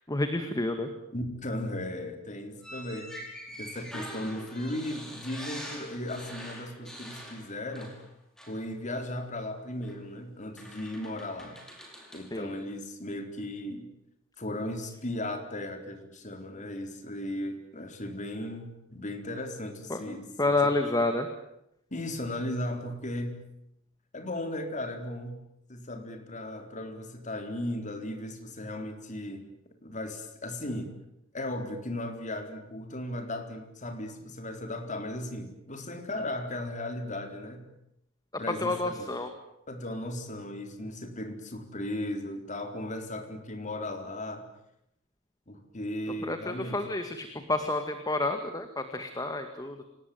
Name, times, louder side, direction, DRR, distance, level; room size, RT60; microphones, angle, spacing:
voice 1, 0.1-0.9 12.3-12.5 19.9-20.0 20.4-21.3 38.6-39.3 46.2-49.8, left 2 dB, 20° left, 7 dB, 1.9 m, -29 dB
voice 2, 1.1-3.1 3.6-8.0 8.5-11.6 12.1-13.9 14.4-20.7 21.9-23.4 24.1-25.4 25.7-29.5 29.8-30.9 31.3-37.7 38.4-39.0 39.7-44.5 45.5-46.8, left 1 dB, 40° left, 5 dB, 4.1 m, -36 dB
sound 1, 2.6-8.1 8.4-8.6 9.8-10.0 10.6-12.3, equal, 5° left, 6.2 m, -44 dB
27.5 x 19.0 x 9.5 m, 0.80 s
head